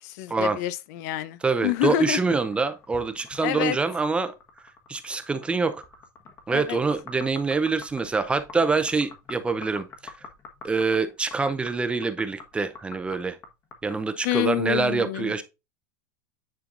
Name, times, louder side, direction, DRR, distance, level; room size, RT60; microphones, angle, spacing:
voice 1, 0.0-2.2 3.4-3.8 6.5-6.8 14.2-15.3, left 14 dB, 65° left, 0.7 m, -27 dB
voice 2, 1.4-4.3 4.9-5.8 6.5-10.1 10.6-13.4 13.8-15.4, right 4 dB, 10° right, 0.6 m, -25 dB
sound 1, 1.6-14.0, left 4 dB, 30° left, 1.4 m, -46 dB
9.7 x 4.5 x 2.5 m
supercardioid pair, 140°, 10 cm